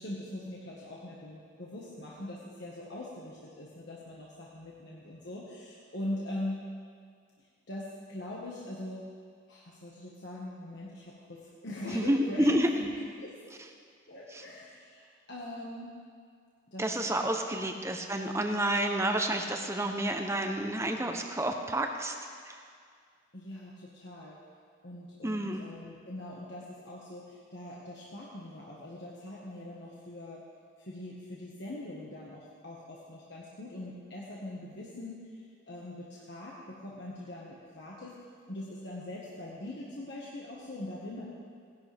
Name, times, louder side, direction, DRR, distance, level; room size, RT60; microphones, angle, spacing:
voice 1, 0.0-6.6 7.7-9.1 9.5-12.9 13.2-13.4 14.1-16.0 16.7-17.6 18.4-18.5 23.3-24.4 24.8-30.4 30.8-35.4 35.7-38.2 38.5-41.3, left 1 dB, 55° left, -5 dB, 1.6 m, -42 dB
voice 2, 11.9-12.7 14.3-14.4 16.8-22.1 22.5-22.6 25.2-25.6, right 1 dB, 15° right, 4 dB, 0.8 m, -29 dB
19.0 x 11.5 x 3.5 m, 2.1 s
head